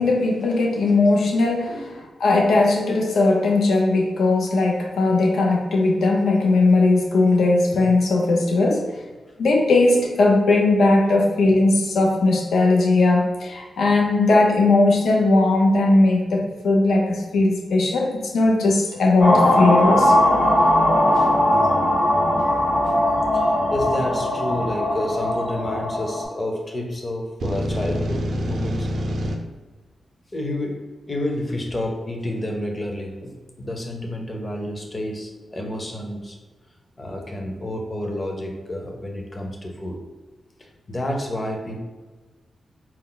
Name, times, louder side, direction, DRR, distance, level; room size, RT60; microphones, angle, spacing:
voice 1, 0.0-1.7 2.2-8.9 9.4-20.1, left 2 dB, 85° left, 0 dB, 0.6 m, -18 dB
sound 1, 19.2-26.2, left 1 dB, 50° left, 1.3 m, -19 dB
voice 2, 23.3-28.9 30.3-36.4 37.0-40.0 40.6-41.8, left 1 dB, 25° left, 1 dB, 0.6 m, -30 dB
sound 2, 27.4-29.3, equal, 70° right, 0.5 m, -26 dB
4.2 x 2.0 x 3.8 m, 1.3 s
wide cardioid pair, 125°, 0 cm